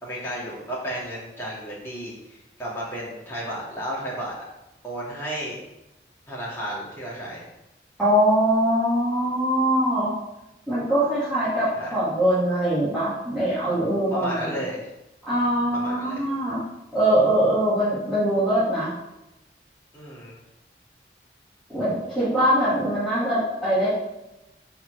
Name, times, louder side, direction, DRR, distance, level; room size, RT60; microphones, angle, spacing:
voice 1, 0.0-4.4 4.8-5.6 6.3-7.4 11.7-11.9 14.1-14.9 15.7-16.2 19.9-20.3, equal, 15° left, -7 dB, 2.4 m, -33 dB
voice 2, 8.0-10.1 10.7-14.6 15.3-16.6 16.9-18.9 21.7-23.9, right 1 dB, 5° right, -15 dB, 2.5 m, -22 dB
5.7 x 4.5 x 6.3 m, 0.94 s
head